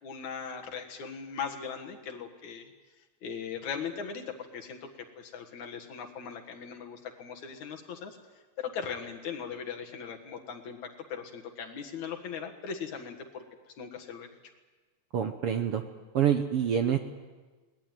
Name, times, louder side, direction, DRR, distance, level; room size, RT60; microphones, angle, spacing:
voice 1, 0.0-2.7 3.2-4.9 5.2-8.2 8.6-10.8 11.1-14.3, left 6 dB, 60° left, 3 dB, 2.9 m, -39 dB
voice 2, 15.1-15.8 16.1-17.0, right 9 dB, 70° right, 6 dB, 1.4 m, -26 dB
21.5 x 19.0 x 9.2 m, 1.3 s
omnidirectional pair, 3.9 m